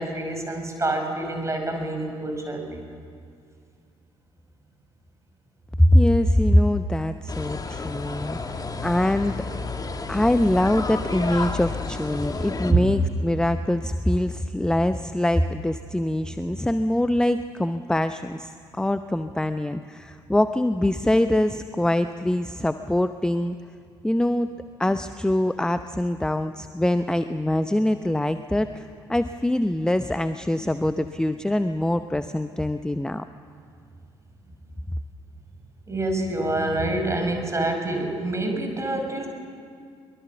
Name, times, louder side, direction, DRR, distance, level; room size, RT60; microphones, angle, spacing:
voice 1, 0.0-2.8 12.7-12.9 35.9-39.3, right 2 dB, 20° right, 3 dB, 5.6 m, -26 dB
voice 2, 5.8-9.5 10.1-23.6 24.0-24.5 24.8-33.2, left 1 dB, 5° left, 10 dB, 0.8 m, -23 dB
sound 1, 7.3-12.7, left 3 dB, 25° left, 1.8 m, -31 dB
23.0 x 22.0 x 7.2 m, 2.3 s
figure-of-eight pair, 45°, 14 cm